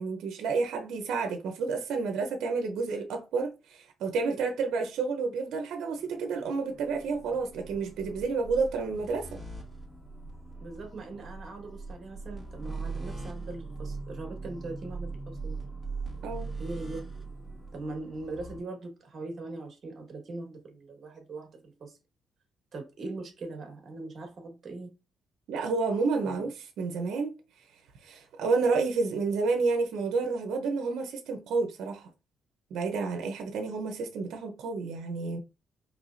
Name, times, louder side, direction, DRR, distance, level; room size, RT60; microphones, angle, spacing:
voice 1, 0.0-9.4 16.2-16.5 25.5-27.3 28.0-32.1 32.7-35.4, right 4 dB, 75° right, 0.9 m, -30 dB
sound 1, 5.9-18.6, right 3 dB, 5° left, 1.9 m, -41 dB
voice 2, 10.6-15.6 16.6-17.1 17.7-22.0 22.7-24.9 26.2-26.5, right 2 dB, 50° right, 1.6 m, -41 dB
4.7 x 3.1 x 2.6 m
cardioid pair, 90°, 0 cm